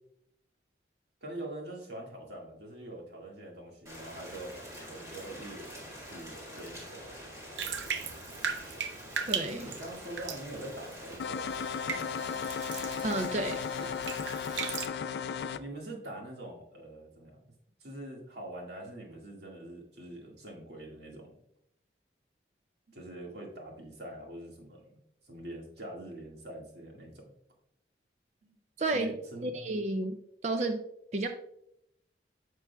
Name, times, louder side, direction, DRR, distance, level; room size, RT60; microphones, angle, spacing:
voice 1, 1.2-4.5 4.8-7.0 9.5-11.5 11.9-12.1 15.5-17.4 17.8-21.3 22.9-27.3 28.4-28.6 28.9-29.7, right 1 dB, 65° right, -1 dB, 1.9 m, -44 dB
Rain, 3.9-11.2, equal, 15° right, 1.7 m, -46 dB
Bathtub (filling or washing), 7.6-14.9, right 6 dB, 85° right, 0.6 m, -38 dB
voice 2, 9.3-9.6 13.0-13.6 28.8-29.1 29.4-30.8 31.1-31.3, right 2 dB, 40° right, 6 dB, 0.5 m, -31 dB
sound 1, 11.2-15.6, left 6 dB, 70° left, 0.3 m, -35 dB
9.8 x 6.1 x 2.3 m, 0.75 s
head